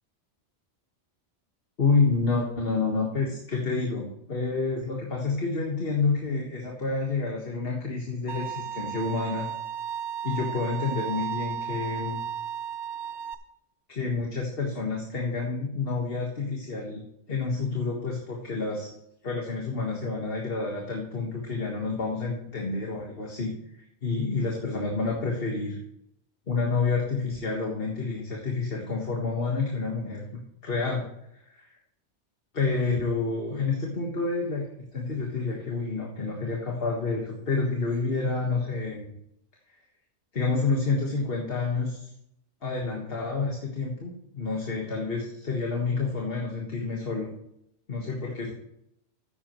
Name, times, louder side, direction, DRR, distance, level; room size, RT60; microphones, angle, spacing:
voice 1, 1.8-9.5 10.2-12.2 13.9-17.0 17.3-18.9 19.2-25.8 26.5-30.3 30.6-31.1 31.3-31.7 32.5-39.1 40.3-42.1 42.6-47.3 47.9-48.5, left 4 dB, 55° left, -1 dB, 1.8 m, -29 dB
Bowed string instrument, 8.3-13.3, right 8 dB, 75° right, 1.1 m, -34 dB
14.0 x 10.0 x 3.1 m, 0.79 s
omnidirectional pair, 1.2 m